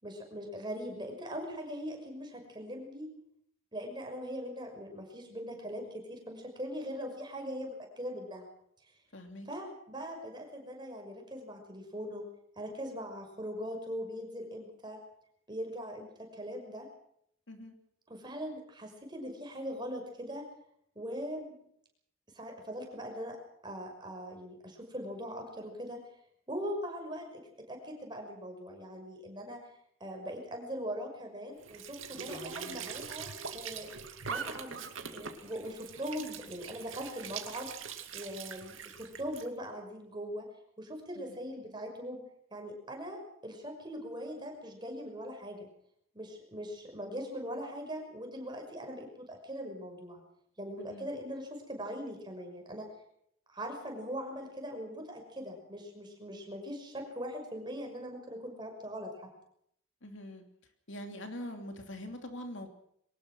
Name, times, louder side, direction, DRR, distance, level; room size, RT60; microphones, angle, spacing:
voice 1, 0.0-3.1 3.7-8.5 9.5-12.2 12.6-15.0 15.5-16.9 18.1-20.4 21.0-21.6 22.3-23.4 23.6-26.0 26.5-27.4 27.7-29.6 30.0-33.3 33.5-33.9 34.3-37.7 38.1-40.5 40.8-42.2 42.5-45.7 46.1-50.2 50.6-52.9 53.5-59.1, equal, 20° right, 3 dB, 6.0 m, -41 dB
voice 2, 9.1-9.5 17.5-17.7 32.3-33.0 41.3-41.4 50.8-51.1 60.0-60.4 60.9-62.7, left 1 dB, 60° left, 5 dB, 2.9 m, -44 dB
Squeak / Sink (filling or washing) / Trickle dribble, 31.6-39.5, right 6 dB, 70° right, 2.4 m, -43 dB
23.0 x 19.5 x 6.3 m, 0.69 s
head